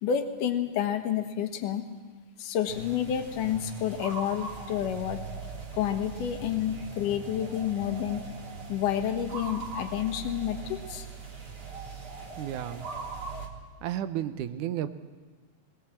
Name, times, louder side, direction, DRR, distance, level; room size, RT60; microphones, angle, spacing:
voice 1, 0.0-1.8 2.4-5.2 5.7-8.2 8.7-11.1, left 9 dB, 80° left, 6 dB, 2.9 m, -29 dB
sound 1, 2.7-13.5, right 4 dB, 45° right, 3.1 m, -40 dB
voice 2, 12.4-12.9 13.8-14.9, right 11 dB, 75° right, 10 dB, 2.3 m, -32 dB
22.0 x 20.5 x 7.5 m, 1.4 s
omnidirectional pair, 3.7 m